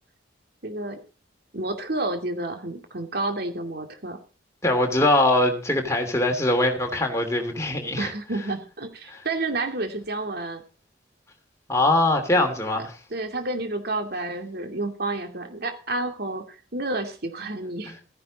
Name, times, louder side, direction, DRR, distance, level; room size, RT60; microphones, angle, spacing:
voice 1, 0.6-1.0 1.5-4.2 8.0-10.6 13.1-17.9, right 2 dB, 55° right, 2.5 m, -30 dB
voice 2, 4.6-8.1 11.7-13.0, left 1 dB, 15° left, 2.8 m, -22 dB
15.0 x 10.5 x 4.2 m
head